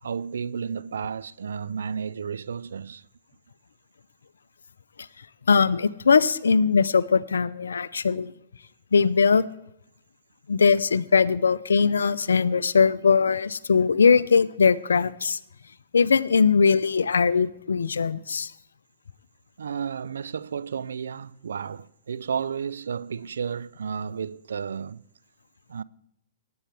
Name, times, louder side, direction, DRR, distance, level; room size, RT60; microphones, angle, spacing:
voice 1, 0.0-3.0 19.6-25.0 25.7-25.8, right 6 dB, 80° right, 0.4 m, -32 dB
voice 2, 5.5-8.3 8.9-9.4 10.5-15.4 15.9-18.5, left 5 dB, 85° left, 0.5 m, -20 dB
18.5 x 8.7 x 3.4 m
hypercardioid pair, 125°, 0 cm